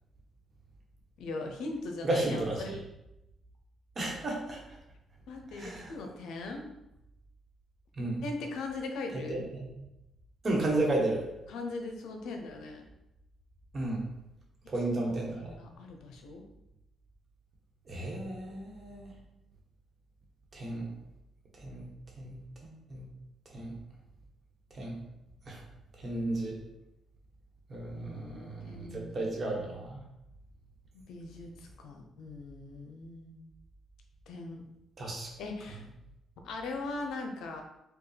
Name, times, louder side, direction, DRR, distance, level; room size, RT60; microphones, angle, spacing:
voice 1, 1.2-2.7 5.3-6.7 8.2-9.4 11.5-12.8 15.0-16.4 27.9-29.3 30.9-33.5 34.3-34.6 35.4-35.9 36.4-37.6, left 3 dB, 85° left, 3 dB, 0.6 m, -40 dB
voice 2, 2.0-2.8 4.0-4.6 5.5-5.9 8.0-8.2 9.3-9.6 10.4-11.2 13.7-14.0 14.7-15.5 17.9-19.1 20.5-20.9 21.6-21.8 22.2-22.3 22.6-23.0 23.5-23.7 24.8-25.0 25.5-25.6 26.0-26.6 27.7-28.9 29.1-30.0 35.0-35.3, right 2 dB, 40° right, -1 dB, 1.2 m, -33 dB
4.6 x 2.3 x 3.2 m, 0.88 s
cardioid pair, 90°, 0 cm